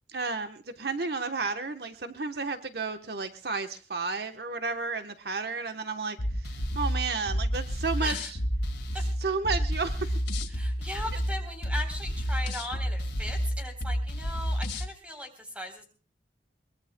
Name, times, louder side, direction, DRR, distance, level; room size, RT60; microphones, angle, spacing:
voice 1, 0.1-6.2 6.7-8.4 9.2-10.2, right 4 dB, 65° right, 7 dB, 1.0 m, -32 dB
sound 1, 6.2-14.9, equal, 85° left, 2.0 m, -30 dB
voice 2, 8.0-8.3 8.9-9.0 10.5-15.9, left 1 dB, 5° right, 5 dB, 3.7 m, -38 dB
22.5 x 21.5 x 2.2 m, 0.36 s
head